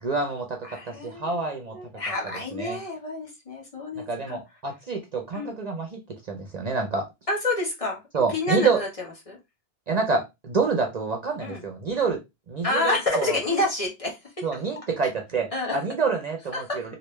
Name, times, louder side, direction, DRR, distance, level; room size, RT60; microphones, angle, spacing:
voice 1, 0.0-1.8 2.6-2.8 4.0-6.0 6.3-7.1 8.1-8.8 9.9-12.2 12.5-13.4 14.4-16.9, right 4 dB, 45° right, 0.7 m, -27 dB
voice 2, 0.7-1.4 1.7-4.4 5.3-5.5 7.3-8.0 8.3-8.9 9.3-9.4 11.4-11.6 12.6-14.6 15.5-15.8 16.5-16.9, left 2 dB, 35° left, 1.0 m, -28 dB
3.3 x 2.5 x 3.1 m
omnidirectional pair, 1.0 m